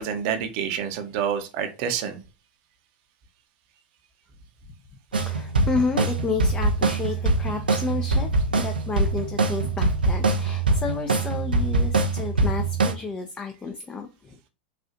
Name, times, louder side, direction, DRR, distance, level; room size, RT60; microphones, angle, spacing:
voice 1, 0.0-2.2, right 8 dB, 50° right, 0.7 m, -28 dB
sound 1, 5.1-12.9, right 3 dB, 85° right, 0.6 m, -23 dB
voice 2, 5.2-14.1, left 4 dB, 20° left, 0.4 m, -31 dB
4.2 x 2.4 x 2.4 m
hypercardioid pair, 95°, 5 cm